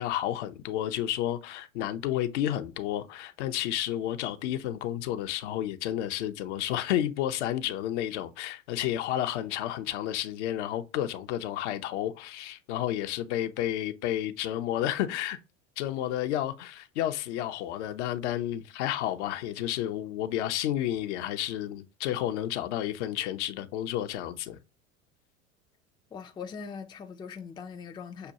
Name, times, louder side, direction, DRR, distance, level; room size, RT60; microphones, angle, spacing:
voice 1, 0.0-15.4 15.8-24.6, left 12 dB, 60° left, 0.6 m, -31 dB
voice 2, 26.1-28.3, left 6 dB, 10° left, 0.4 m, -41 dB
6.6 x 2.2 x 2.8 m
hypercardioid pair, 80°, 39 cm